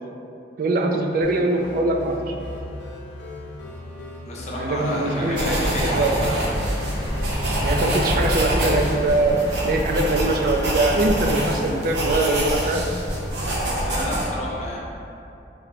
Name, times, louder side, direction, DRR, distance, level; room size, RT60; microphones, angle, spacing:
voice 1, 0.6-2.4 4.6-6.2 7.6-12.8, right 2 dB, 50° right, 2 dB, 0.3 m, -22 dB
sound 1, 1.2-13.9, left 1 dB, 80° left, 0.6 m, -37 dB
voice 2, 4.3-6.4 13.8-14.8, left 1 dB, 40° left, -4 dB, 0.5 m, -31 dB
sound 2, 4.8-11.4, equal, 15° right, 0.7 m, -31 dB
sound 3, 5.3-14.2, right 1 dB, 70° right, 0.7 m, -26 dB
4.4 x 2.1 x 4.1 m, 2.7 s
head